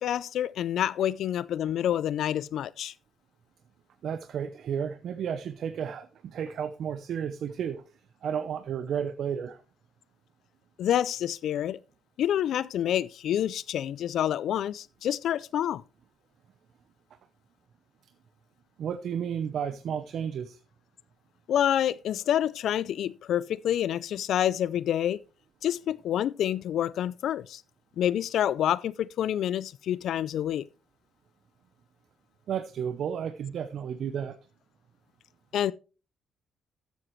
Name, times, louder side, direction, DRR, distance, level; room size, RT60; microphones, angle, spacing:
voice 1, 0.0-2.9 10.8-11.8 12.2-15.8 21.5-25.2 25.6-27.6 28.0-30.6 35.5-35.7, left 10 dB, 75° left, 0.4 m, -28 dB
voice 2, 4.0-7.8 8.2-9.6 18.8-20.6 32.5-34.4, right 8 dB, 65° right, 0.8 m, -32 dB
13.5 x 7.8 x 3.1 m
cardioid pair, 90°, 0 cm